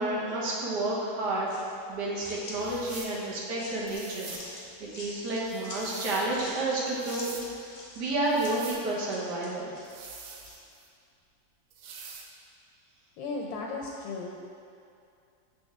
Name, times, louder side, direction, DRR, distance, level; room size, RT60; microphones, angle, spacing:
voice 1, 0.0-1.5 1.9-4.3 4.8-7.3 8.0-9.7, right 2 dB, 70° right, -4 dB, 1.4 m, -30 dB
sound 1, 1.5-10.6, left 2 dB, 50° left, 0.8 m, -45 dB
sound 2, 2.6-3.2 3.9-4.5 5.5-6.3 6.9-7.5 8.3-8.9 9.8-10.9 11.7-12.3, right 6 dB, 85° right, 1.3 m, -45 dB
voice 2, 13.2-14.5, left 3 dB, 85° left, -1 dB, 1.3 m, -36 dB
6.6 x 4.1 x 3.4 m, 2.5 s
omnidirectional pair, 2.0 m